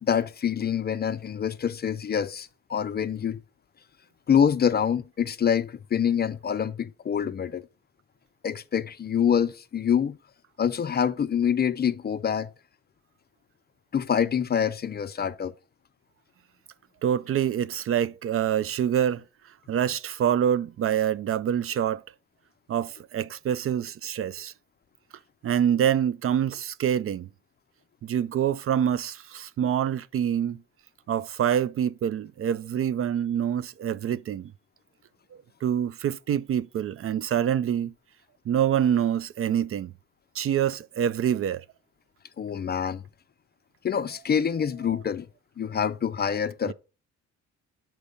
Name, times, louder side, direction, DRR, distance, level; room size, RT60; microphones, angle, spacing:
voice 1, 0.0-3.4 4.3-7.7 8.4-10.2 10.6-12.5 13.9-15.5 42.4-43.0 43.8-45.3 45.6-46.7, left 8 dB, 35° left, 0.4 m, -26 dB
voice 2, 17.0-19.2 19.7-22.0 22.7-24.5 25.4-27.3 28.0-30.6 31.1-34.5 35.6-37.9 38.5-39.9 40.3-41.6 46.7-46.8, right 9 dB, 50° right, 0.4 m, -26 dB
7.0 x 4.5 x 5.0 m
cardioid pair, 90°, 30 cm